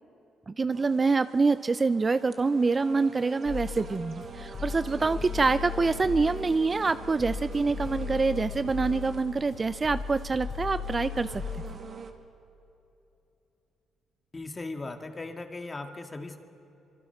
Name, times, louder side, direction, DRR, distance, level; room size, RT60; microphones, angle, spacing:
voice 1, 0.5-11.3, right 4 dB, 30° right, 14 dB, 0.4 m, -26 dB
sound 1, 0.7-12.1, right 4 dB, 50° right, 1.9 m, -45 dB
sound 2, 3.4-11.7, left 6 dB, 60° left, 4.0 m, -37 dB
voice 2, 14.3-16.4, left 3 dB, 25° left, 5 dB, 2.0 m, -38 dB
25.0 x 24.5 x 5.9 m, 2.9 s
cardioid pair, 90°, 0 cm